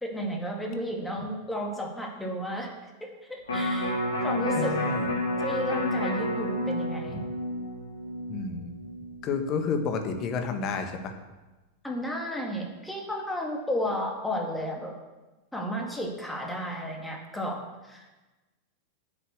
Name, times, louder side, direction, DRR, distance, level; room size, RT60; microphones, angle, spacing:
voice 1, 0.0-2.7 3.0-4.8 5.4-7.2 11.8-14.9 15.5-18.2, equal, 5° left, 0 dB, 2.3 m, -33 dB
Electric guitar, 3.5-9.7 10.1-10.2, left 1 dB, 70° left, 2.9 m, -30 dB
voice 2, 4.6-5.1 7.1-7.3 8.3-8.7 9.2-11.1, left 5 dB, 35° left, 6 dB, 1.6 m, -30 dB
9.2 x 7.3 x 8.0 m, 1.2 s
figure-of-eight pair, 90°, 0 cm